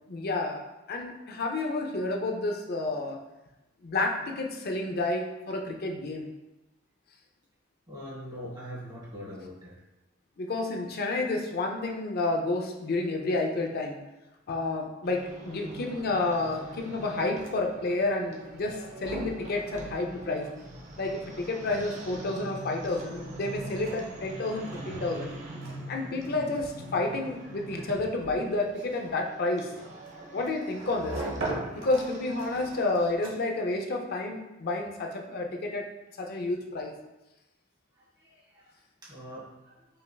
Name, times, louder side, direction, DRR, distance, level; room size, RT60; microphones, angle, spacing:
voice 1, 0.1-0.6 0.9-3.2 3.8-6.3 10.4-14.0 14.5-20.5 21.0-25.3 25.9-29.7 30.3-31.2 31.8-35.9 36.2-36.9, left 2 dB, 50° left, 2 dB, 0.6 m, -30 dB
voice 2, 7.9-9.8 38.0-40.0, equal, 20° right, -8 dB, 1.5 m, -43 dB
sound 1, 15.0-33.1, right 1 dB, 40° right, 0.6 m, -44 dB
sound 2, 17.2-33.7, right 2 dB, 75° right, 1.1 m, -43 dB
5.4 x 3.4 x 2.3 m, 1.0 s
head